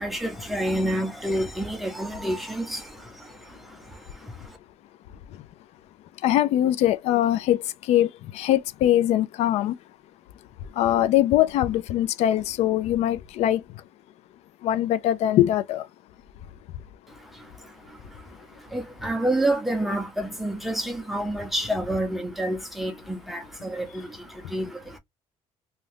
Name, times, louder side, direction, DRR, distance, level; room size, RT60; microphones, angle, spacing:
voice 1, 0.0-2.8 18.7-23.7 23.9-24.0 24.5-24.7, right 1 dB, ahead, 0.7 m, -27 dB
voice 2, 6.2-9.8 10.8-13.6 14.6-15.9, left 12 dB, 65° left, 0.4 m, -22 dB
2.7 x 2.3 x 3.3 m
cardioid pair, 155°, 12 cm